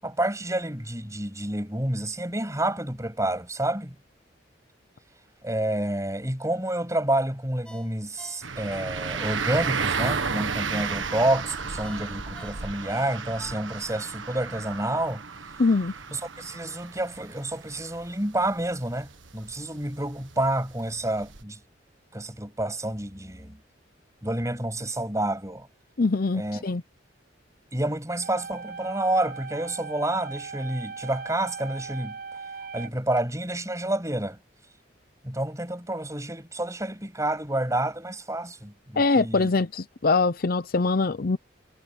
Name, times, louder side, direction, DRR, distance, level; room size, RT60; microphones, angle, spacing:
voice 1, 0.0-4.0 5.4-15.2 16.1-21.6 22.1-23.6 24.2-25.7 26.3-26.6 27.7-32.2 32.7-34.4 35.2-39.5, right 1 dB, 15° right, 7.8 m, -29 dB
Ringtone, 7.6-9.9 10.3-10.4 11.8-14.1 14.5-14.6, left 1 dB, 5° left, 7.6 m, -49 dB
sound 1, 8.4-21.4, right 5 dB, 80° right, 1.6 m, -33 dB
voice 2, 15.6-15.9 26.0-26.8 39.0-41.4, left 3 dB, 50° left, 0.6 m, -23 dB
sound 2, 28.2-33.2, right 5 dB, 50° right, 5.8 m, -39 dB
head